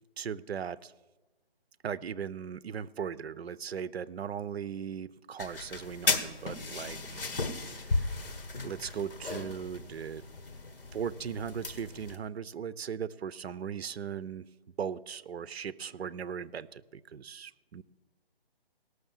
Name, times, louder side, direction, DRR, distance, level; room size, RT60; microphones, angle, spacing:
voice 1, 0.2-0.9 1.8-8.1 8.6-10.2 10.9-14.5 14.8-17.8, right 7 dB, 80° right, 18 dB, 0.6 m, -38 dB
sound 1, 5.4-12.2, left 3 dB, 60° left, 1.4 m, -35 dB
17.5 x 6.4 x 7.2 m, 1.2 s
hypercardioid pair, 180°, 31 cm